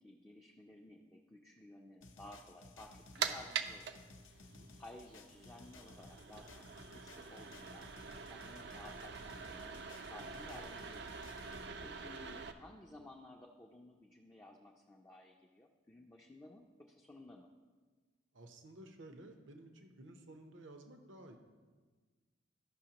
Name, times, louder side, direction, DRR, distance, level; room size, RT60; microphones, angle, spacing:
voice 1, 0.0-4.0 4.2-4.5 4.8-7.9 8.2-11.5 11.8-17.5, left 1 dB, 15° left, -1 dB, 0.4 m, -56 dB
sound 1, 2.0-11.7, left 2 dB, 75° left, 0.7 m, -58 dB
sound 2, 2.8-12.5, right 6 dB, 55° right, 0.5 m, -45 dB
voice 2, 4.4-4.7 11.4-11.8 18.3-21.4, right 1 dB, 70° right, 5 dB, 0.8 m, -55 dB
14.0 x 5.8 x 2.9 m, 1.4 s
head